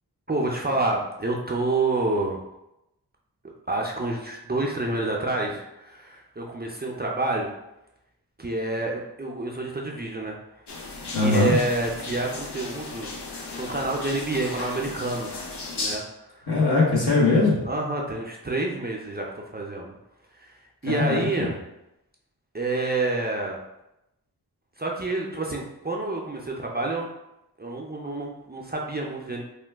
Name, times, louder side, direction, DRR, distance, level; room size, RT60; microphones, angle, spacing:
voice 1, 0.3-2.4 3.7-7.5 8.4-10.4 11.2-13.1 13.5-15.3 15.8-16.0 16.3-16.4 17.7-20.0 20.5-20.6 20.8-21.5 22.5-23.6 24.8-27.1 27.6-29.4, right 2 dB, 25° right, -1 dB, 0.4 m, -28 dB
sound 1, 10.7-16.0, left 3 dB, 85° left, 0.6 m, -36 dB
voice 2, 11.1-11.5 16.5-17.6 20.8-21.5, left 3 dB, 70° left, -6 dB, 1.2 m, -21 dB
3.0 x 2.2 x 3.3 m, 0.89 s
wide cardioid pair, 60°, 39 cm